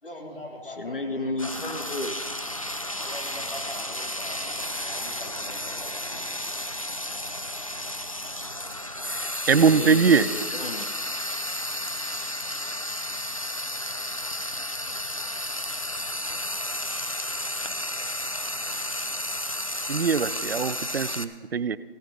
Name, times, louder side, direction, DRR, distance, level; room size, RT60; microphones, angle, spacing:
voice 1, 0.0-1.5 3.0-6.4, equal, 80° left, -2 dB, 3.9 m, -43 dB
voice 2, 0.8-2.2 9.5-10.9, left 2 dB, 65° left, 7 dB, 1.2 m, -32 dB
Frying (food), 1.4-21.2, left 1 dB, 35° left, 0.4 m, -32 dB
voice 3, 9.0-10.3 19.9-21.8, right 5 dB, 80° right, 16 dB, 0.6 m, -22 dB
16.0 x 9.4 x 5.2 m, 1.5 s
figure-of-eight pair, 170°, 30 cm